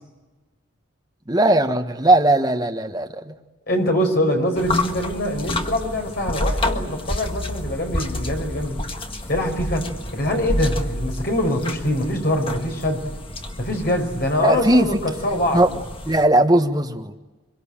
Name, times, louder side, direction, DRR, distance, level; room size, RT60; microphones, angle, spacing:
voice 1, 1.3-3.3 14.4-14.9 15.5-15.8 16.1-17.1, right 1 dB, 20° right, 1.5 m, -18 dB
voice 2, 3.7-8.8 9.3-13.0 13.6-15.6, left 1 dB, 50° left, 5.2 m, -23 dB
sound 1, 4.6-16.2, left 1 dB, 25° left, 1.6 m, -29 dB
24.5 x 23.5 x 8.9 m
head